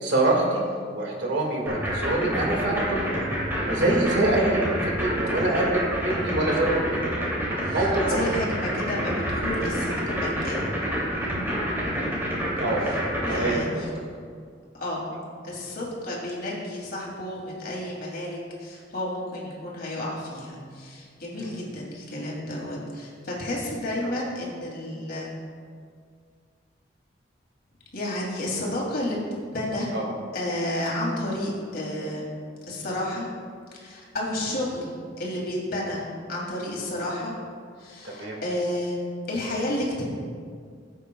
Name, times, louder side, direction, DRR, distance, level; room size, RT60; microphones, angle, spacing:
voice 1, 0.0-3.0 3.7-7.1 7.7-8.4 12.6-12.8 13.2-13.9 21.4-21.6 29.9-30.1 38.0-38.4, right 2 dB, 75° right, -1 dB, 2.0 m, -25 dB
sound 1, 1.7-13.5, equal, 15° right, 2.7 m, -27 dB
voice 2, 4.2-4.6 7.5-10.6 13.3-13.9 14.7-15.1 15.4-25.3 27.9-29.2 29.5-29.9 30.3-32.3 32.7-33.3 33.8-36.0 36.3-37.3 37.8-39.0 39.3-40.1, left 1 dB, 55° left, -4 dB, 2.8 m, -31 dB
16.5 x 8.2 x 2.3 m, 2.1 s
head